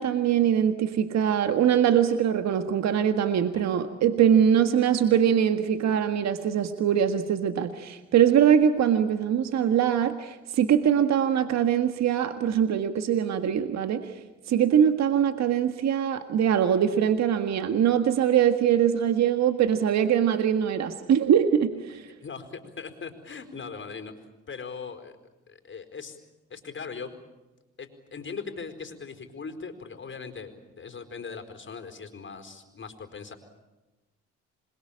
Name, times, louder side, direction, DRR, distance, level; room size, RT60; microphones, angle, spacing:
voice 1, 0.0-14.1 14.5-22.1, right 9 dB, 60° right, 8 dB, 1.8 m, -22 dB
voice 2, 22.2-24.1 24.5-25.2 25.5-26.2 26.5-27.2 27.8-33.4, left 5 dB, 40° left, 7 dB, 4.5 m, -40 dB
27.0 x 22.0 x 8.7 m, 1.1 s
supercardioid pair, 80°, 30 cm